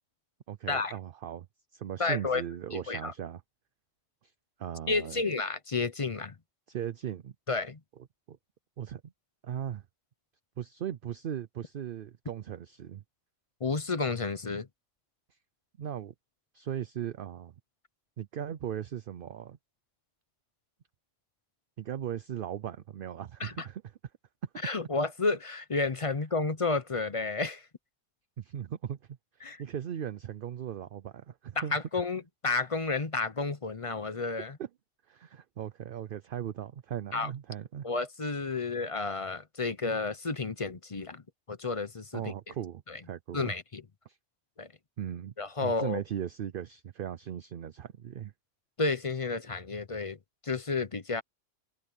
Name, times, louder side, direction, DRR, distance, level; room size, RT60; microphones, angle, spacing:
voice 1, 0.5-1.5 1.7-3.4 4.2-4.3 4.6-5.2 6.7-7.3 8.3-8.4 8.8-9.1 9.4-9.8 10.6-13.0 15.8-16.1 16.5-17.5 18.2-19.6 21.8-23.8 24.4-24.5 28.4-29.0 29.3-31.8 34.6-34.7 35.1-37.9 38.6-38.7 42.1-43.5 44.1-44.2 45.0-45.3 45.6-48.3, right 9 dB, 55° right, 0.7 m, -38 dB
voice 2, 2.0-2.4 2.7-3.1 4.9-6.3 7.5-7.8 13.6-14.7 23.4-23.7 24.6-27.7 29.4-29.6 31.6-34.6 37.1-37.3 37.8-41.2 41.5-42.3 42.9-43.0 43.3-43.8 44.6-44.7 45.4-46.0 48.8-50.2 50.4-51.2, left 3 dB, 30° left, 0.7 m, -31 dB
omnidirectional pair, 1.3 m